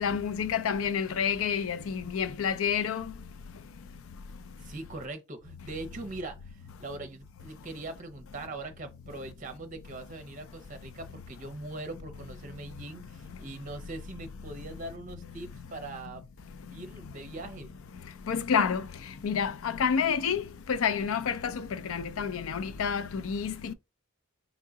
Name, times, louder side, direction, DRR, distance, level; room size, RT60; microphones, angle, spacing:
voice 1, 0.0-3.1 18.3-18.9 19.2-23.7, left 7 dB, 75° left, 0.4 m, -29 dB
voice 2, 4.6-16.2 16.7-17.7, right 2 dB, 40° right, 0.7 m, -41 dB
3.6 x 3.0 x 3.9 m
head